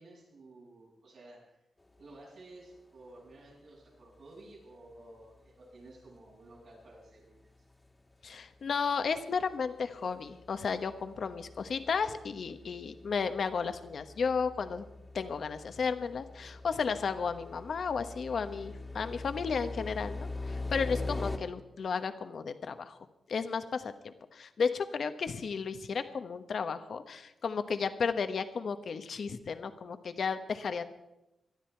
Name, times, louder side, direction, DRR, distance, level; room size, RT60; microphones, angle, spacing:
voice 1, 0.0-1.5 2.0-7.6, right 2 dB, 80° right, -5 dB, 7.5 m, -53 dB
sound 1, 2.1-2.2 3.1-3.2 4.3-4.5 4.9-5.0 5.4-5.5 5.8-5.9 6.6-6.7 6.9-7.0 7.7-7.9 8.1-21.4, left 2 dB, 20° left, 1.7 m, -43 dB
voice 2, 8.2-14.8 15.1-23.0 23.3-30.8, left 5 dB, 65° left, 9 dB, 1.2 m, -33 dB
19.0 x 12.5 x 4.6 m, 0.92 s
cardioid pair, 75°, 0 cm